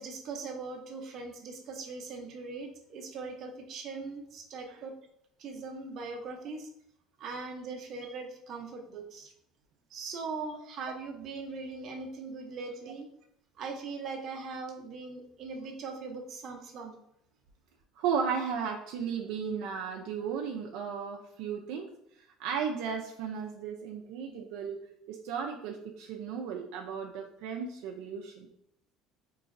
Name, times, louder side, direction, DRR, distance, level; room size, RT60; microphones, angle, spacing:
voice 1, 0.0-4.9 5.4-6.7 7.2-9.3 9.9-13.1 13.6-16.9, right 4 dB, 50° right, 1 dB, 0.7 m, -40 dB
voice 2, 18.0-21.9 22.4-24.8 25.1-28.5, right 6 dB, 80° right, 1 dB, 0.4 m, -35 dB
3.8 x 3.0 x 2.5 m, 0.72 s
cardioid pair, 115°, 0 cm